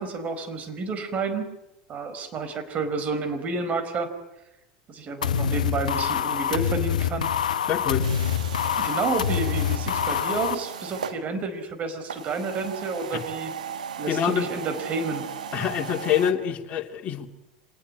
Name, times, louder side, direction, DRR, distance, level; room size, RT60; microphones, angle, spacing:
voice 1, 0.0-1.4 1.9-4.1 4.9-7.3 8.7-13.5 14.0-15.2, right 4 dB, 35° right, 8 dB, 4.7 m, -30 dB
sound 1, 5.2-10.6, left 8 dB, 80° left, 1.0 m, -26 dB
voice 2, 7.7-8.1 13.1-13.2 14.1-14.5 15.5-17.3, left 9 dB, 35° left, 3 dB, 2.8 m, -25 dB
sound 2, 8.0-11.2 12.0-16.3, right 8 dB, 80° right, 1.8 m, -36 dB
26.0 x 19.0 x 9.7 m, 0.92 s
hypercardioid pair, 80°, 4 cm